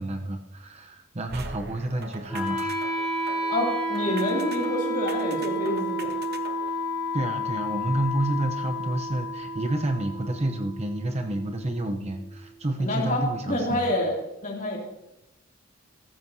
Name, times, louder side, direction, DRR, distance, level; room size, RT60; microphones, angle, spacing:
voice 1, 0.0-2.7 7.1-13.9, right 1 dB, 30° right, 5 dB, 0.8 m, -29 dB
sound 1, 1.3-6.7, right 3 dB, 50° right, 1.0 m, -42 dB
Wind instrument woodwind instrument, 2.3-12.3, equal, 5° right, 4.9 m, -31 dB
voice 2, 3.5-6.1 12.8-14.8, left 1 dB, 40° left, -1 dB, 2.9 m, -28 dB
14.5 x 14.0 x 2.8 m, 0.90 s
head